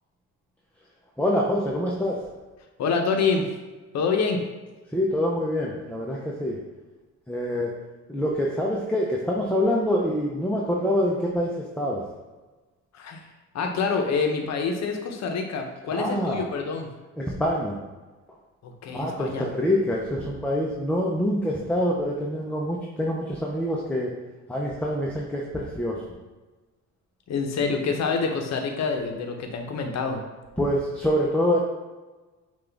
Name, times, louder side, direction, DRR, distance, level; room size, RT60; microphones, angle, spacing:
voice 1, 1.2-2.2 4.9-6.6 7.3-7.7 8.1-12.0 15.9-16.4 17.2-17.8 19.0-24.1 24.5-26.0 30.6-31.6, equal, 5° left, -3 dB, 0.6 m, -25 dB
voice 2, 2.8-3.5 3.9-4.4 12.9-13.2 13.5-16.9 18.6-19.5 27.3-30.2, left 5 dB, 60° left, 3 dB, 0.8 m, -26 dB
5.7 x 2.5 x 3.4 m, 1.2 s
cardioid pair, 90°, 30 cm